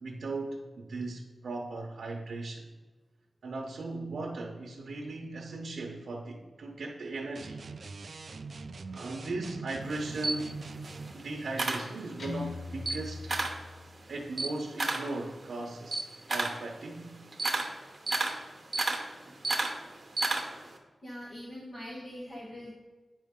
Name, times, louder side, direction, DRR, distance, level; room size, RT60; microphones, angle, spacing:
voice 1, 0.0-2.7 3.4-7.6 8.9-10.6 11.1-13.3 14.1-17.1, right 2 dB, 90° right, -1 dB, 0.8 m, -38 dB
sound 1, 7.3-11.2, right 4 dB, 55° right, 0.4 m, -43 dB
Camera, 9.8-12.4 12.7-13.7 14.0-20.7, right 2 dB, 35° right, 0.9 m, -32 dB
Guitar, 12.2-14.2, left 3 dB, 60° left, 0.7 m, -41 dB
voice 2, 21.0-22.7, equal, 35° left, -5 dB, 1.1 m, -42 dB
8.9 x 5.2 x 3.6 m, 1.3 s
wide cardioid pair, 155°, 0 cm